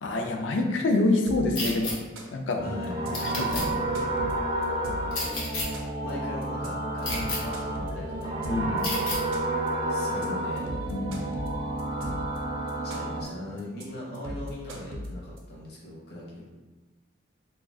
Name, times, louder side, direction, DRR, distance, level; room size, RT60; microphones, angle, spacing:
voice 1, 0.0-2.0 2.3-2.6 3.2-3.7 8.4-8.9 10.9-11.2, left 2 dB, 70° left, 3 dB, 0.4 m, -26 dB
sound 1, 1.3-1.6 1.9-2.5 2.8-3.1 3.4-5.2 5.5-6.1 6.4-6.7 7.0-8.8 9.1-9.7 10.0-10.3 10.6-12.4 12.7-13.3 13.6-13.8 14.1-15.4, equal, 90° right, 0.5 m, -38 dB
sound 2, 1.6-1.9 3.1-3.6 5.1-5.7 7.0-7.4 8.8-9.2, left 2 dB, 90° left, 0.9 m, -31 dB
voice 2, 2.6-3.4 3.7-4.1 6.0-8.3 9.9-10.7 12.0-12.1 12.8-16.5, left 1 dB, 50° left, -5 dB, 0.7 m, -39 dB
sound 3, 2.6-13.2, right 1 dB, 20° right, 0.3 m, -30 dB
2.3 x 2.2 x 3.5 m, 1.2 s
head